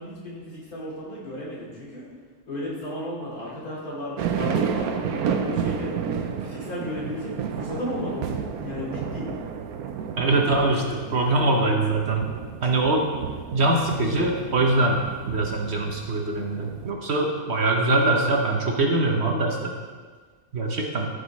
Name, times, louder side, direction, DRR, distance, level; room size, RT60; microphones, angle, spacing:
voice 1, 0.0-2.1 2.5-6.0 6.4-9.3, left 1 dB, 85° left, -6 dB, 3.2 m, -34 dB
sound 1, 4.2-16.9, right 7 dB, 80° right, 1.2 m, -31 dB
voice 2, 10.2-12.2 12.6-13.1 13.5-15.0 15.3-19.7 20.5-21.1, right 2 dB, 50° right, 1 dB, 1.2 m, -23 dB
13.5 x 5.4 x 4.1 m, 1.5 s
omnidirectional pair, 1.5 m